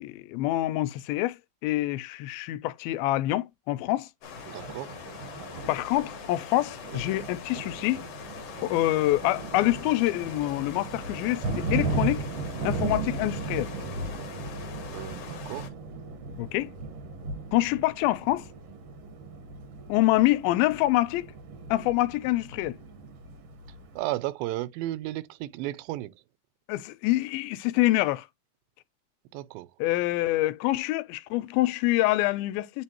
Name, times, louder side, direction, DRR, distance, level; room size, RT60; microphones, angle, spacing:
voice 1, 0.0-1.4 1.6-4.1 5.7-8.0 8.6-12.3 12.6-13.7 16.4-16.7 17.5-18.5 19.9-21.3 21.7-22.8 26.7-28.3 29.8-32.8, left 17 dB, 85° left, 2.4 m, -26 dB
sound 1, 4.2-15.7, left 8 dB, 60° left, 1.8 m, -43 dB
Thunder, 4.3-24.0, right 3 dB, 60° right, 1.7 m, -36 dB
voice 2, 4.5-4.9 14.9-15.7 24.0-26.1 29.3-29.7, right 16 dB, 85° right, 2.4 m, -33 dB
8.9 x 3.6 x 2.9 m
omnidirectional pair, 4.2 m